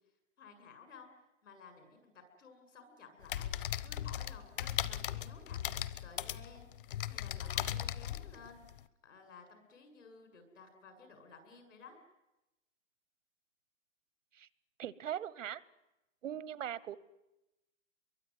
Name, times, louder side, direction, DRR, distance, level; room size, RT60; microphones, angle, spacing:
voice 1, 0.4-1.1 1.4-3.5 3.8-5.6 6.0-6.7 7.0-8.7 9.0-12.0, left 4 dB, 80° left, 6 dB, 7.9 m, -55 dB
sound 1, 3.2-8.8, left 11 dB, 45° left, 0.9 m, -38 dB
voice 2, 14.8-15.6 16.2-17.0, right 10 dB, 80° right, 19 dB, 1.2 m, -40 dB
25.0 x 23.0 x 9.7 m, 0.98 s
hypercardioid pair, 170°, 37 cm